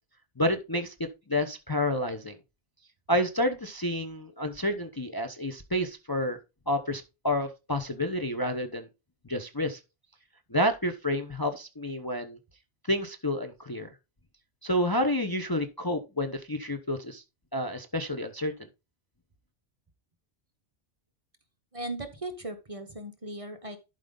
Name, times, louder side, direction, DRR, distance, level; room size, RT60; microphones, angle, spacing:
voice 1, 0.4-0.9 1.3-2.4 3.1-6.4 6.7-8.9 9.3-9.8 10.5-12.4 12.9-13.9 14.6-17.2 17.5-18.5, left 1 dB, 20° left, 6 dB, 0.8 m, -29 dB
voice 2, 21.7-23.8, right 1 dB, 30° right, 7 dB, 1.1 m, -37 dB
11.5 x 5.1 x 3.9 m, 0.27 s
omnidirectional pair, 1.2 m